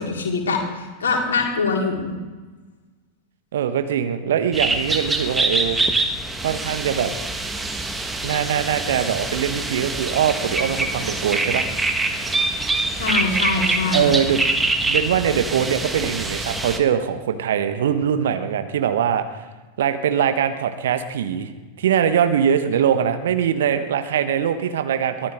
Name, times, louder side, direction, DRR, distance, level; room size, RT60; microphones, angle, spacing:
voice 1, 0.0-2.1 13.0-14.0, left 4 dB, 65° left, -1 dB, 4.1 m, -23 dB
voice 2, 3.5-5.8 6.4-7.1 8.2-11.7 13.9-14.4 14.8-19.4 19.8-21.5 21.8-25.3, right 8 dB, 60° right, 9 dB, 1.3 m, -22 dB
sound 1, 4.5-16.8, right 2 dB, 10° right, 1.5 m, -24 dB
23.0 x 16.0 x 3.8 m, 1.3 s
figure-of-eight pair, 90°, 0 cm